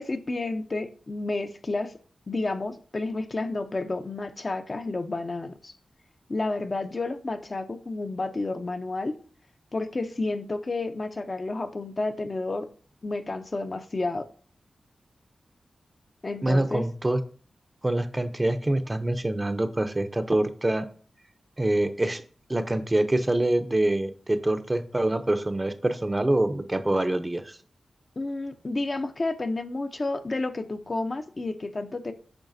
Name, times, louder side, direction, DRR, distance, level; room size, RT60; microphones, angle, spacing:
voice 1, 0.0-1.9 2.3-5.7 6.3-9.1 9.7-12.7 13.0-14.3 16.2-16.9 28.2-32.1, left 2 dB, 40° left, 8 dB, 0.6 m, -30 dB
voice 2, 16.4-17.2 17.8-20.9 21.6-22.2 22.5-27.6, right 1 dB, 20° right, 9 dB, 0.5 m, -25 dB
8.8 x 5.6 x 2.6 m, 0.42 s
wide cardioid pair, 85°, 0 cm